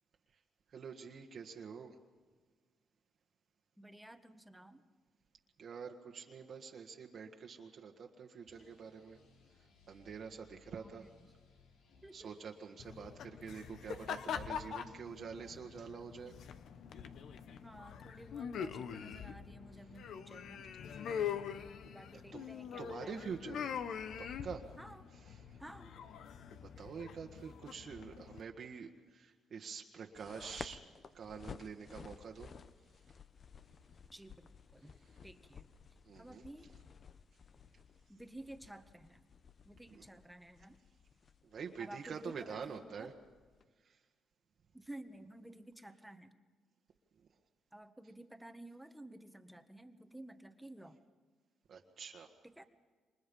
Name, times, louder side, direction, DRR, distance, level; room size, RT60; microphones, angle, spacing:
voice 1, 0.7-1.9 5.6-9.2 9.9-11.0 12.1-16.3 21.8-21.9 22.3-22.5 22.8-23.8 24.2-24.6 25.3-25.6 26.8-30.8 31.1-32.5 36.0-36.4 41.5-43.1 43.8-44.0 51.7-52.3, right 6 dB, 55° right, 1 dB, 1.6 m, -46 dB
voice 2, 3.8-4.9 10.7-11.1 12.0-12.3 17.6-20.7 21.9-23.2 24.8-25.1 25.6-25.9 34.1-34.9 35.2-35.7 36.2-36.7 38.1-39.2 39.6-40.8 41.8-43.1 44.7-46.4 47.7-51.0 52.4-52.6, right 1 dB, 5° right, 7 dB, 1.5 m, -53 dB
sound 1, 8.5-14.2, left 4 dB, 85° left, 3.7 m, -66 dB
sound 2, 12.8-28.4, left 8 dB, 70° left, 1.2 m, -44 dB
sound 3, 30.1-43.6, left 6 dB, 45° left, 0.9 m, -55 dB
28.5 x 25.0 x 5.5 m, 1.5 s
cardioid pair, 90°, 0 cm